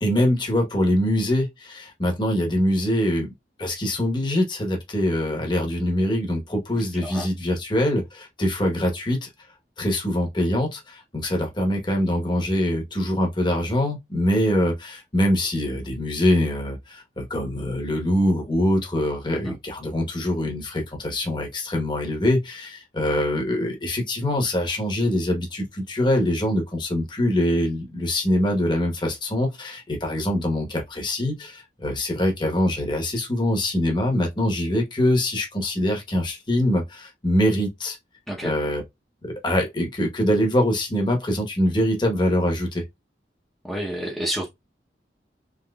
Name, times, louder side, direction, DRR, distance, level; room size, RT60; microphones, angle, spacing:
voice 1, 0.0-3.3 3.6-9.3 9.8-38.0 38.4-38.8 39.2-42.8, left 1 dB, 25° left, 1.0 m, -24 dB
voice 2, 43.6-44.5, right 1 dB, 5° left, 0.7 m, -29 dB
3.6 x 3.0 x 2.3 m
head